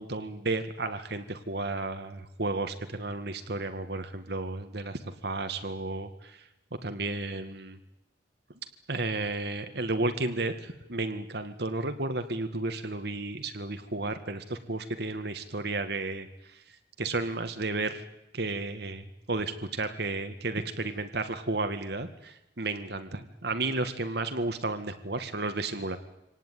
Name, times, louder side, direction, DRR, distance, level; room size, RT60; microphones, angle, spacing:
voice 1, 0.0-6.4 6.8-7.8 8.9-18.0 18.3-26.0, right 2 dB, 60° right, 8 dB, 1.8 m, -33 dB
25.5 x 18.5 x 9.4 m, 0.89 s
head